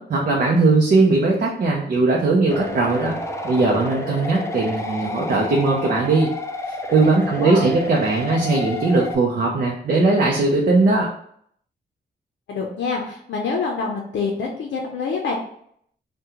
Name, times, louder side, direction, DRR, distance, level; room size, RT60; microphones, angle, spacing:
voice 1, 0.0-3.2 3.4-6.3 6.9-11.1, right 3 dB, 50° right, -1 dB, 0.6 m, -19 dB
sound 1, 2.5-9.2, left 1 dB, 15° left, 0.3 m, -30 dB
voice 2, 7.3-7.7 12.5-15.3, left 4 dB, 80° left, 0 dB, 0.5 m, -26 dB
2.8 x 2.2 x 3.6 m, 0.67 s
wide cardioid pair, 115°, 19 cm